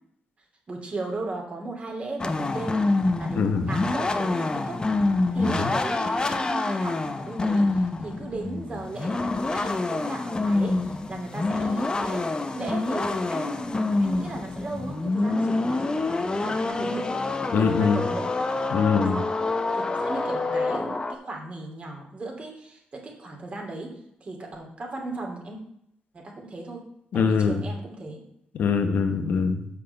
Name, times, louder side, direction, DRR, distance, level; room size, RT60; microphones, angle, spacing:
voice 1, 0.7-2.8 3.2-4.8 5.3-12.3 12.5-17.2 17.5-18.3 19.0-19.4 19.7-23.9 24.2-25.6 26.1-26.8 27.1-28.2, right 2 dB, 45° right, 0 dB, 2.7 m, -36 dB
sound 1, 2.2-21.1, left 2 dB, 25° left, 0.8 m, -26 dB
voice 2, 3.3-3.7 5.4-5.7 17.5-18.0 18.7-19.2 27.1-27.6 28.5-29.7, left 5 dB, 75° left, 6 dB, 1.1 m, -23 dB
6.7 x 5.7 x 6.6 m, 0.74 s
cardioid pair, 80°, 3 cm